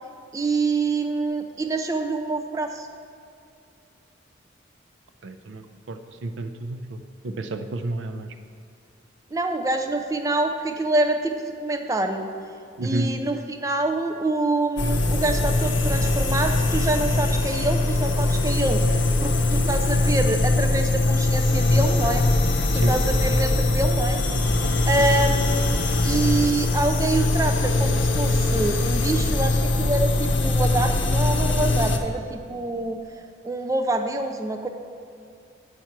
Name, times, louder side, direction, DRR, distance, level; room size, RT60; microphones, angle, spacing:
voice 1, 0.3-2.9 9.3-11.3 11.6-12.3 12.8-22.2 22.7-24.2 24.9-33.0 33.4-34.7, right 2 dB, 15° right, 5 dB, 0.4 m, -26 dB
voice 2, 5.2-8.3 12.8-13.1 22.7-22.9 25.0-25.1, right 2 dB, 85° right, 8 dB, 0.5 m, -31 dB
sound 1, 14.8-32.0, left 2 dB, 80° left, 0.7 m, -22 dB
8.2 x 4.5 x 5.7 m, 2.4 s
head